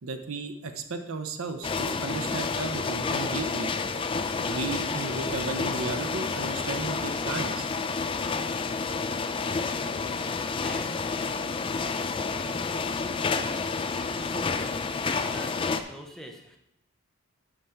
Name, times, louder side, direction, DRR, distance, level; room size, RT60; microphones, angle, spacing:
voice 1, 0.0-3.7 4.4-7.7, right 3 dB, 65° right, 7 dB, 0.7 m, -34 dB
sound 1, 1.6-15.8, left 4 dB, 25° left, 0.3 m, -30 dB
voice 2, 9.4-16.6, equal, ahead, 2 dB, 0.7 m, -46 dB
9.0 x 5.1 x 4.4 m, 0.82 s
head